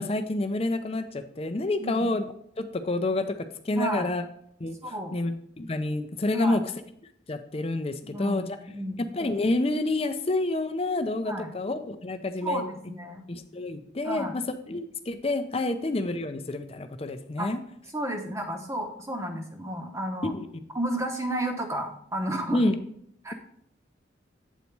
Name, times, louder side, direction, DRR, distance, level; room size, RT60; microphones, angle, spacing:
voice 1, 0.0-2.2 2.6-3.4 3.6-4.2 4.6-4.7 5.1-6.6 7.3-8.6 9.0-12.6 13.3-17.6 20.2-20.5 22.5-22.8, left 2 dB, 30° left, 9 dB, 0.5 m, -28 dB
voice 2, 1.8-2.1 3.7-4.1 4.8-5.2 6.3-6.6 8.0-8.5 8.7-9.0 11.2-11.5 12.4-13.2 14.0-14.3 17.4-17.5 17.9-20.3 20.7-22.6 23.2-23.3, right 1 dB, 15° right, 4 dB, 0.8 m, -32 dB
8.2 x 4.1 x 4.6 m, 0.69 s
head